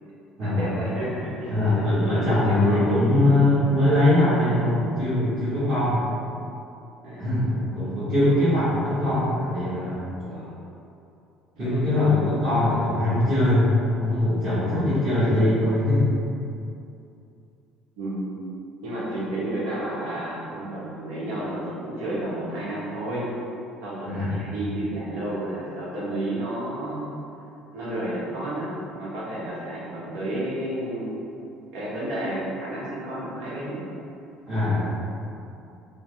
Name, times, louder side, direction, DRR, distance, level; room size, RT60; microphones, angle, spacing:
voice 1, 0.4-2.9 7.0-7.3 10.2-10.5 11.6-11.9 14.6-14.8 15.2-15.5 18.0-18.3 18.8-23.3 23.8-27.1 27.7-31.1 31.7-33.8, right 1 dB, 85° right, -7 dB, 1.0 m, -31 dB
voice 2, 1.5-6.0 7.2-10.0 11.6-13.7 14.0-16.1 24.0-24.4 34.5-34.9, left 1 dB, 35° right, -16 dB, 1.1 m, -21 dB
3.4 x 2.1 x 3.1 m, 2.6 s
cardioid pair, 165°, 0 cm